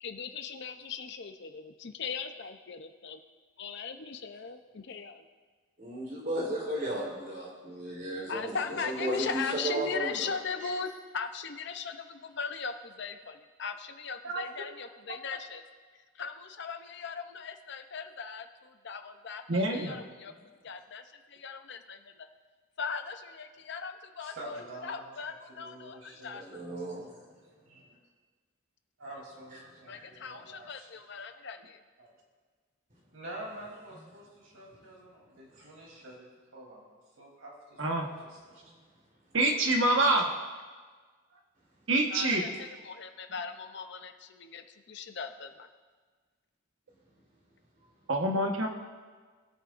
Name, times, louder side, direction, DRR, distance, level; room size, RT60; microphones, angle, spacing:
voice 1, 0.0-3.2 3.6-5.2 8.3-15.6 16.1-20.3 20.6-21.0 21.3-22.3 22.8-26.4 29.9-31.8 42.1-45.7, left 5 dB, 55° left, 7 dB, 0.7 m, -39 dB
voice 2, 5.8-10.3 10.6-10.7 26.3-27.0 29.9-30.0, right 1 dB, 40° right, -5 dB, 3.5 m, -34 dB
voice 3, 14.2-14.7 19.5-20.0 37.8-38.1 39.3-40.3 41.9-42.4 48.1-48.7, right 2 dB, 65° right, 2 dB, 1.3 m, -26 dB
voice 4, 24.2-25.2 25.5-27.5 29.0-30.9 32.0-32.1 33.1-36.8 37.2-37.8 38.1-38.8, right 1 dB, 85° right, -3 dB, 3.2 m, -47 dB
20.0 x 8.8 x 2.6 m, 1.5 s
head